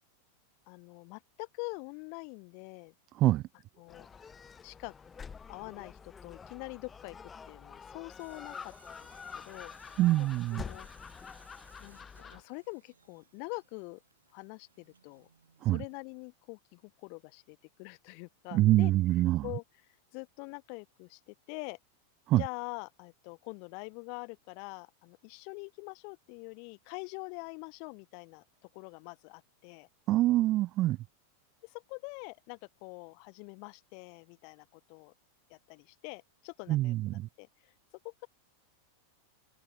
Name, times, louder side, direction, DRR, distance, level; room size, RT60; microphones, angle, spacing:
voice 1, 0.7-2.9 3.8-4.3 4.6-4.9 5.5-7.2 7.5-9.1 9.3-10.9 11.8-14.0 14.3-15.3 15.6-18.9 19.4-19.6 20.1-21.8 22.4-28.4 28.7-29.9 31.6-35.1 35.5-36.9 37.4-37.7 38.0-38.3, left 40 dB or more, 45° left, 3.8 m, -45 dB
Gull seagull, 3.9-12.4, left 6 dB, 20° left, 1.1 m, -47 dB
Tools, 8.2-16.0, right 5 dB, 75° right, 4.8 m, -63 dB
voice 2, 10.0-10.6 15.6-15.8 18.5-19.5 22.3-22.4 30.1-31.0 36.7-37.3, right 16 dB, 35° right, 0.6 m, -25 dB
open air
figure-of-eight pair, 90°, 0 cm